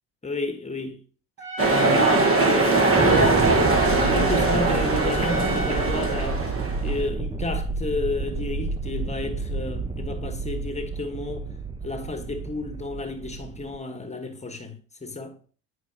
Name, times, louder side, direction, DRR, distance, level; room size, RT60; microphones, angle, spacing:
voice 1, 0.2-1.0 1.7-2.9 3.1-6.4 6.8-11.5 11.8-15.3, left 2 dB, 20° left, 1.2 m, -32 dB
Trumpet, 1.4-6.3, equal, 75° right, 3.4 m, -34 dB
sound 1, 1.6-6.9, right 3 dB, 35° right, 1.4 m, -21 dB
sound 2, 2.7-13.8, right 4 dB, 15° right, 0.6 m, -30 dB
8.6 x 4.8 x 2.8 m
hypercardioid pair, 70°, 38 cm